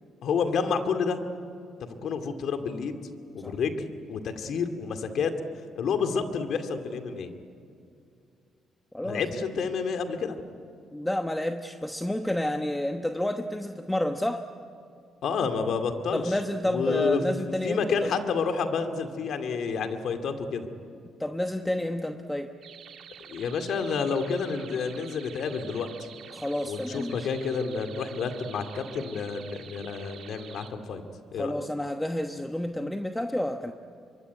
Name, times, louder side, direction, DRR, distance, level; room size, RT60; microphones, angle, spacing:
voice 1, 0.2-1.2 2.0-3.0 3.3-5.3 5.8-7.3 9.0-10.4 15.2-16.2 16.6-17.2 17.6-20.7 23.3-25.9 26.7-31.0 31.3-31.5, left 5 dB, 70° left, 7 dB, 2.3 m, -29 dB
voice 2, 10.9-14.5 16.1-18.1 21.2-22.5 26.3-27.3 31.3-33.7, left 1 dB, 10° left, 6 dB, 1.1 m, -30 dB
sound 1, 22.6-30.7, right 8 dB, 70° right, 2.4 m, -48 dB
24.5 x 23.5 x 9.6 m, 2.4 s
cardioid pair, 90°, 0 cm